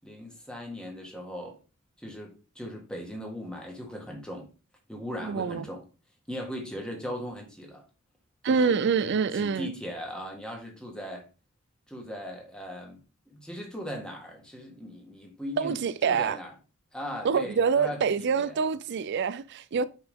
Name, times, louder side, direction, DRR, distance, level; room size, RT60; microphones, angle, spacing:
voice 1, 0.0-1.6 2.0-4.5 4.9-5.8 6.3-7.8 8.4-11.3 11.9-13.0 13.3-16.5 16.9-18.6, equal, 5° left, 1.7 m, -39 dB
voice 2, 5.2-5.7 8.4-9.7 15.6-16.4 17.2-19.8, right 5 dB, 55° right, 0.4 m, -26 dB
5.9 x 5.6 x 3.6 m
head